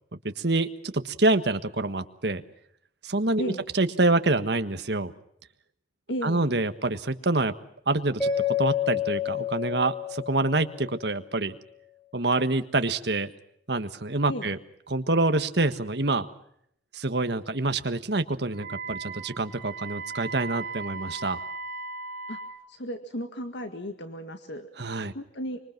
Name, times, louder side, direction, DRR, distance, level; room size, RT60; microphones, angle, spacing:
voice 1, 0.2-2.4 3.0-5.1 6.2-7.5 7.9-8.3 8.6-11.6 12.1-13.3 13.7-14.6 14.9-16.3 16.9-21.4 24.8-25.1, right 2 dB, 65° right, 9 dB, 1.5 m, -26 dB
voice 2, 6.1-6.5 14.3-14.5 22.3-22.4 22.7-24.7 25.1-25.6, equal, 70° left, 7 dB, 1.9 m, -34 dB
Mallet percussion, 8.2-11.2, left 8 dB, 10° left, 5.3 m, -29 dB
Wind instrument woodwind instrument, 18.5-22.6, right 4 dB, 45° right, 3.8 m, -37 dB
25.5 x 24.0 x 6.0 m, 0.71 s
head